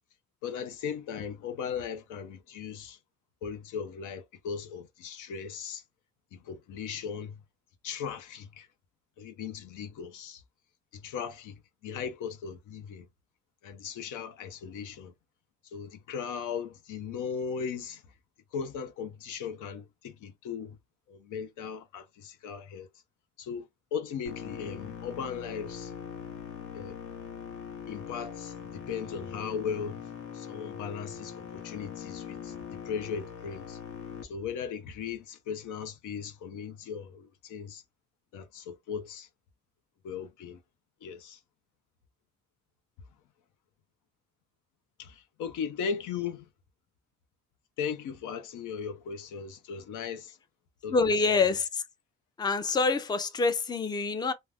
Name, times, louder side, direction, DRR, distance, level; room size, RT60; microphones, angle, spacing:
voice 1, 0.4-3.0 3.4-5.8 6.3-7.4 7.8-8.7 9.2-10.4 10.9-13.1 13.6-15.1 15.6-18.1 18.5-20.8 21.1-22.9 23.4-25.9 26.7-27.0 27.9-30.1 30.3-33.8 34.2-37.8 38.3-39.3 40.0-40.6 41.0-41.4 45.0-46.5 47.8-50.4 50.8-51.1 51.4-51.6, left 7 dB, 80° left, 0.7 m, -38 dB
sound 1, 24.3-34.2, left 7 dB, 45° left, 1.0 m, -42 dB
voice 2, 50.9-51.8 52.4-54.3, left 4 dB, 15° left, 0.4 m, -26 dB
2.4 x 2.2 x 3.3 m
cardioid pair, 90°, 30 cm